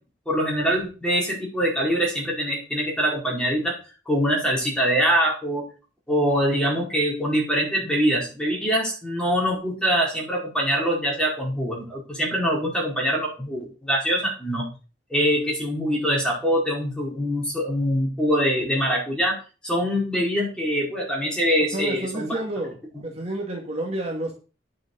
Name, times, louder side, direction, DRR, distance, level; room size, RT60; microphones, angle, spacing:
voice 1, 0.3-3.8 4.1-5.7 6.1-14.7 15.1-19.4 19.6-22.4, equal, 5° left, -3 dB, 4.8 m, -24 dB
voice 2, 21.7-22.8 23.0-24.3, right 1 dB, 35° right, 0 dB, 2.2 m, -29 dB
9.8 x 6.5 x 6.8 m, 0.35 s
head